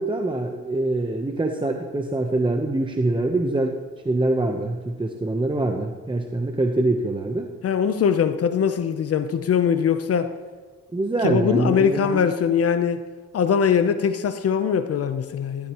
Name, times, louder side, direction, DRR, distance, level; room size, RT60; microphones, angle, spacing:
voice 1, 0.0-3.8 4.0-7.5 10.9-12.3, right 2 dB, 15° right, 3 dB, 0.9 m, -24 dB
voice 2, 7.6-10.3 11.2-13.0 13.3-15.7, left 7 dB, 50° left, 9 dB, 0.8 m, -21 dB
15.5 x 12.5 x 3.1 m, 1.4 s
cardioid pair, 90°, 30 cm